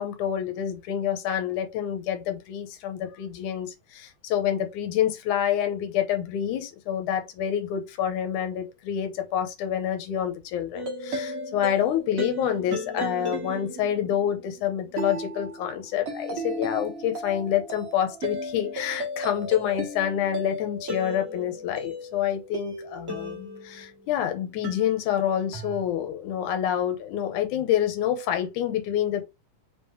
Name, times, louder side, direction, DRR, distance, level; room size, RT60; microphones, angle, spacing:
voice 1, 0.0-29.2, left 10 dB, 80° left, 2.4 m, -27 dB
sound 1, 10.7-24.1 24.6-25.8, equal, 40° right, 1.3 m, -35 dB
5.0 x 3.7 x 2.8 m
omnidirectional pair, 3.5 m